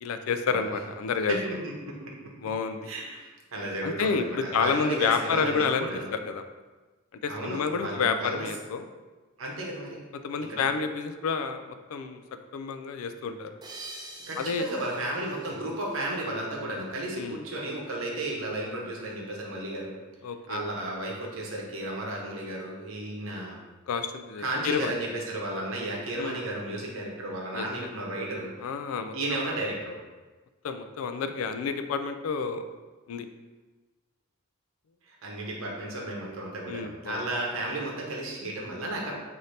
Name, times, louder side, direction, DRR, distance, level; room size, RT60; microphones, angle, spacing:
voice 1, 0.0-1.4 2.4-2.9 3.8-6.4 7.2-8.9 10.2-12.2 12.5-13.5 14.4-14.7 17.2-17.4 20.2-20.6 23.9-24.9 26.2-26.4 27.5-27.7 28.6-29.1 30.6-32.6 33.1-33.3 36.7-37.3, left 5 dB, 85° left, 9 dB, 0.3 m, -29 dB
voice 2, 1.3-2.3 2.8-6.2 7.3-8.4 9.4-10.0 10.5-10.6 14.3-19.9 20.5-23.6 24.4-28.5 29.1-30.0 35.1-39.1, right 1 dB, 75° right, -2 dB, 0.8 m, -33 dB
sound 1, 13.6-16.7, right 2 dB, 20° right, 0.3 m, -46 dB
4.1 x 2.7 x 3.2 m, 1.2 s
head